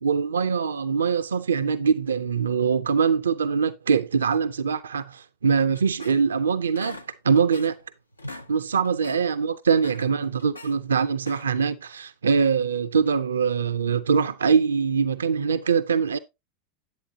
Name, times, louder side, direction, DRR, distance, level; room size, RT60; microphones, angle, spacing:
voice 1, 0.0-7.0 7.2-7.7 8.5-16.2, right 6 dB, 75° right, 0.4 m, -23 dB
sound 1, 5.7-6.4 6.8-7.9 8.1-8.5 8.8-9.2 9.7-10.8 11.2-11.7, left 1 dB, 90° left, 0.5 m, -42 dB
10.5 x 8.4 x 2.8 m
figure-of-eight pair, 85°, 0 cm